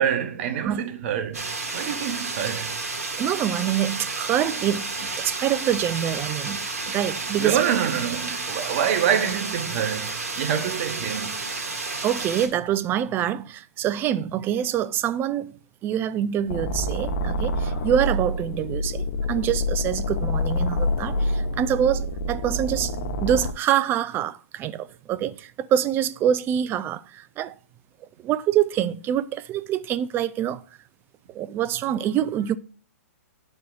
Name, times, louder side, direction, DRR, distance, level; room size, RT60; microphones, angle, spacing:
voice 1, 0.0-2.8 7.4-11.4, right 9 dB, 50° right, 0.9 m, -26 dB
sound 1, 1.3-12.5, right 3 dB, 90° right, 1.9 m, -31 dB
voice 2, 3.2-4.8 5.2-7.6 12.0-15.6 15.8-27.5 28.2-30.6 31.3-32.6, right 10 dB, 25° right, 0.4 m, -25 dB
sound 2, 16.5-23.5, left 1 dB, 60° left, 0.9 m, -27 dB
11.5 x 4.4 x 2.3 m
hypercardioid pair, 125°, 8 cm